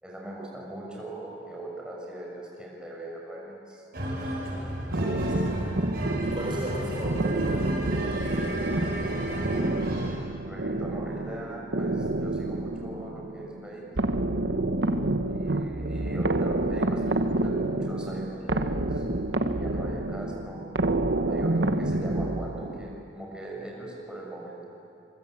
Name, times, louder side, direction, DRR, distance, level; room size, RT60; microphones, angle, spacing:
voice 1, 0.0-3.9 10.4-13.8 15.3-19.0 19.4-20.6 21.3-24.6, right 1 dB, 5° right, -3 dB, 6.5 m, -41 dB
sound 1, 3.9-10.2, equal, 60° right, 6.9 m, -33 dB
voice 2, 4.8-5.7 6.2-8.9, right 1 dB, 30° right, -3 dB, 4.1 m, -38 dB
sound 2, 4.9-23.0, right 2 dB, 80° right, 1.2 m, -28 dB
26.5 x 23.5 x 8.2 m, 2.8 s
head